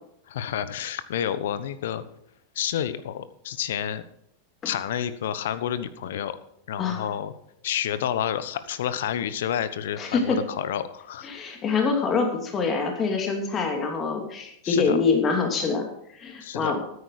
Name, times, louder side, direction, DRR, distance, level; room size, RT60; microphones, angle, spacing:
voice 1, 0.3-2.0 2.5-4.0 4.6-6.4 6.7-7.3 7.6-11.3 14.6-15.0 16.4-16.7, left 10 dB, 70° left, 13 dB, 1.0 m, -29 dB
voice 2, 10.0-10.4 11.2-15.9 16.1-16.8, left 4 dB, 30° left, 3 dB, 2.7 m, -25 dB
13.0 x 9.7 x 4.9 m, 0.73 s
hypercardioid pair, 95°, 0 cm